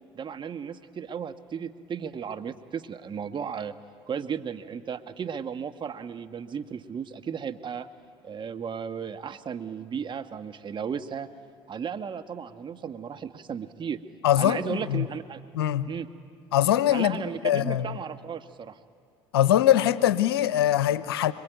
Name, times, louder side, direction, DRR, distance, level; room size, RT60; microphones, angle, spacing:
voice 1, 0.1-3.7 4.1-7.9 8.2-11.3 11.7-14.0 14.4-15.4 15.9-16.1 16.9-18.8, right 7 dB, 40° right, 8 dB, 1.5 m, -35 dB
voice 2, 14.2-15.1 15.5-15.9 16.5-18.0 19.3-21.3, left 12 dB, 85° left, 15 dB, 0.8 m, -23 dB
26.0 x 24.0 x 9.3 m, 2.2 s
hypercardioid pair, 65°, 12 cm